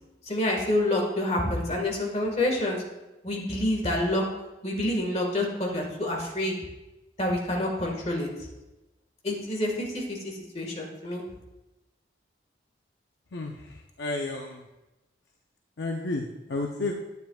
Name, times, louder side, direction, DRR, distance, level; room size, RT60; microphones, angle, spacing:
voice 1, 0.3-2.8 3.2-4.2 4.6-6.6 7.2-8.3 9.2-11.2, left 1 dB, 35° left, 0 dB, 1.6 m, -27 dB
voice 2, 14.0-14.6 15.8-16.9, left 2 dB, 65° left, 2 dB, 0.6 m, -31 dB
10.5 x 9.4 x 2.4 m, 1.0 s
head